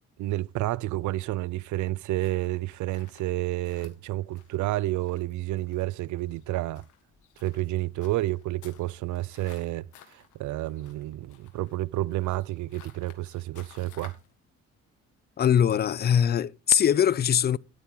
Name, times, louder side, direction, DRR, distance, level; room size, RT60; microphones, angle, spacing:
voice 1, 0.2-6.8 7.4-14.2, right 17 dB, 75° right, 0.5 m, -30 dB
sound 1, 2.2-14.3, left 10 dB, 80° left, 1.8 m, -56 dB
voice 2, 15.4-17.6, left 9 dB, 35° left, 0.4 m, -22 dB
10.0 x 9.2 x 3.8 m
cardioid pair, 90°, 30 cm